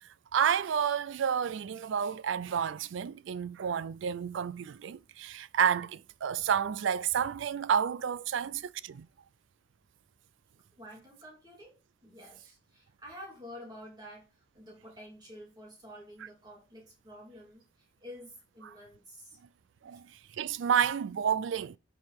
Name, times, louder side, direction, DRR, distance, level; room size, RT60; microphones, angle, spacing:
voice 1, 0.0-9.1 18.6-18.7 19.8-21.8, right 8 dB, 75° right, 0.4 m, -30 dB
voice 2, 10.8-19.4, equal, 20° right, 2.6 m, -49 dB
7.8 x 4.6 x 3.5 m
head